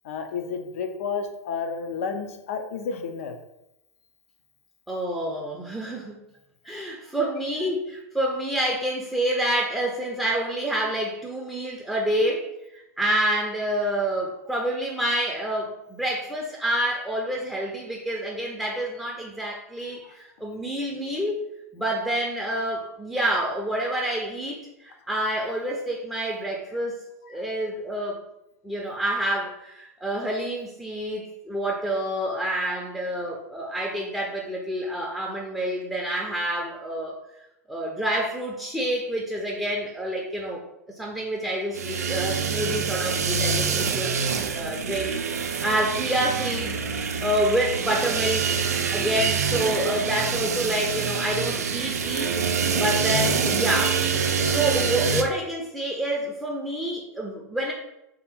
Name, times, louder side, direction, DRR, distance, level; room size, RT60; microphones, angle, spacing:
voice 1, 0.0-3.4 6.7-6.8 32.7-32.8, left 5 dB, 60° left, 6 dB, 0.6 m, -31 dB
voice 2, 4.9-6.2 6.6-21.5 21.7-28.2 28.6-37.1 37.7-40.6 40.9-44.2 44.5-48.5 48.9-52.3 52.8-54.0 54.4-57.7, right 1 dB, ahead, -2 dB, 0.6 m, -28 dB
sound 1, 41.7-55.2, right 5 dB, 70° right, 0.4 m, -26 dB
3.4 x 2.8 x 4.2 m, 0.89 s
figure-of-eight pair, 95°, 9 cm